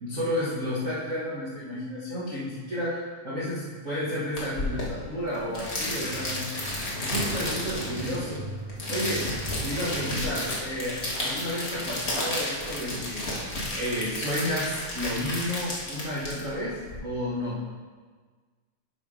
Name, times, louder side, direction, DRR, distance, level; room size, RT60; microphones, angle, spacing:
voice 1, 0.0-6.5 6.9-8.5 8.9-9.3 9.6-13.3 13.7-17.7, equal, 85° right, -9 dB, 0.7 m, -31 dB
sound 1, 4.4-17.0, left 1 dB, 70° left, 0.6 m, -32 dB
sound 2, 5.1-11.1, equal, 60° right, 3.7 m, -44 dB
11.0 x 5.2 x 3.7 m, 1.5 s
omnidirectional pair, 3.8 m